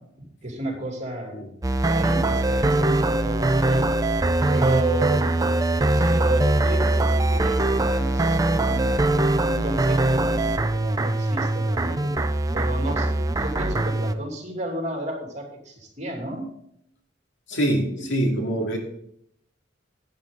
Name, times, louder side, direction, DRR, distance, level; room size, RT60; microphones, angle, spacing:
voice 1, 0.2-1.4 1.9-3.9 4.5-5.4 5.7-9.1 9.5-12.2 12.5-16.5 18.0-18.1, right 2 dB, 40° right, 1 dB, 2.7 m, -32 dB
sound 1, 1.6-14.1, right 2 dB, 20° right, 0.5 m, -22 dB
voice 2, 17.5-18.8, right 1 dB, 80° left, 1 dB, 2.4 m, -24 dB
11.0 x 9.0 x 3.9 m, 0.74 s
head